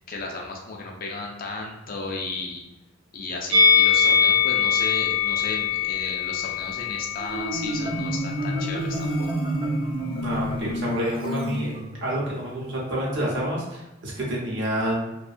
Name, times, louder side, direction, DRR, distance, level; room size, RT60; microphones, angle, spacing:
voice 1, 0.1-2.6 3.1-9.3, left 3 dB, 45° left, 0 dB, 0.4 m, -34 dB
Musical instrument, 3.5-8.7 9.0-9.2, left 6 dB, 85° right, 0.5 m, -23 dB
Marimba xylophone, 7.2-12.3, equal, 25° right, 0.3 m, -29 dB
voice 2, 10.2-11.7 12.0-15.1, right 1 dB, 60° right, -4 dB, 0.8 m, -28 dB
2.4 x 2.1 x 2.5 m, 0.99 s
head